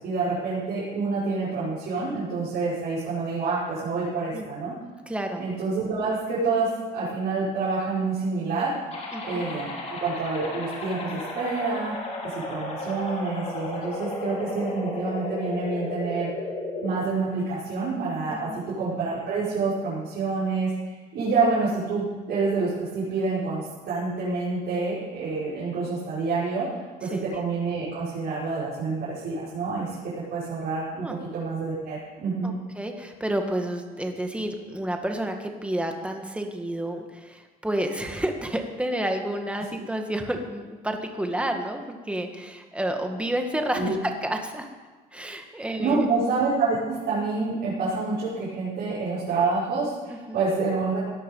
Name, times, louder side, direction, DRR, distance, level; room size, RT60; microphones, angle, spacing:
voice 1, 0.0-4.7 5.4-8.7 9.2-11.9 12.2-16.3 16.8-26.7 27.0-32.5 43.7-44.0 45.6-51.1, right 4 dB, 65° right, -11 dB, 5.9 m, -27 dB
voice 2, 5.1-5.4 9.1-9.5 18.3-18.6 27.1-27.3 31.0-31.2 32.4-44.7 45.1-46.1 50.1-50.4, right 1 dB, 5° right, 4 dB, 2.0 m, -30 dB
sound 1, 8.9-16.9, left 2 dB, 40° left, 4.5 m, -34 dB
17.5 x 11.0 x 5.6 m, 1.3 s
cardioid pair, 110°, 17 cm